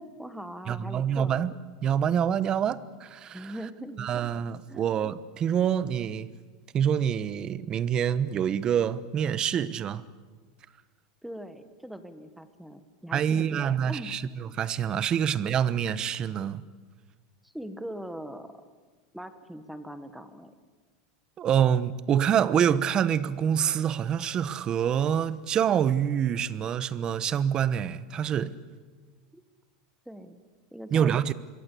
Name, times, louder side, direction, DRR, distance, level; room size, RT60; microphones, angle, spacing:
voice 1, 0.0-1.4 3.3-4.1 4.7-4.8 11.2-14.2 17.4-18.7 19.1-20.5 29.3-29.4 30.1-30.4 30.7-31.3, right 1 dB, ahead, 1.4 m, -41 dB
voice 2, 0.7-1.5 1.8-3.5 4.0-6.3 6.7-10.0 13.1-16.6 21.4-28.5 30.9-31.3, right 8 dB, 30° right, 1.0 m, -26 dB
27.0 x 23.0 x 8.5 m
supercardioid pair, 150°, 3 cm